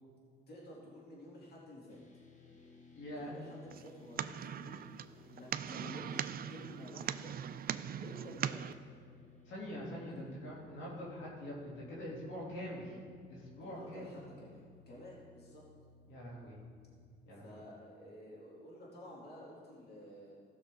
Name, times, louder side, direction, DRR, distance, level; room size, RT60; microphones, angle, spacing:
voice 1, 0.5-2.0 3.1-4.8 5.3-7.3 8.0-8.9 10.1-10.2 13.6-15.6 17.4-20.3, left 1 dB, 55° left, -5 dB, 2.8 m, -51 dB
sound 1, 1.9-17.2, left 3 dB, 40° left, 1.3 m, -60 dB
voice 2, 3.0-3.4 9.5-13.0 13.3-14.1 16.1-16.6 17.3-17.6, equal, 75° left, -5 dB, 3.0 m, -44 dB
sound 2, 3.7-8.7, right 9 dB, 50° right, 0.4 m, -40 dB
16.0 x 6.4 x 3.8 m, 2.2 s
cardioid pair, 90°, 20 cm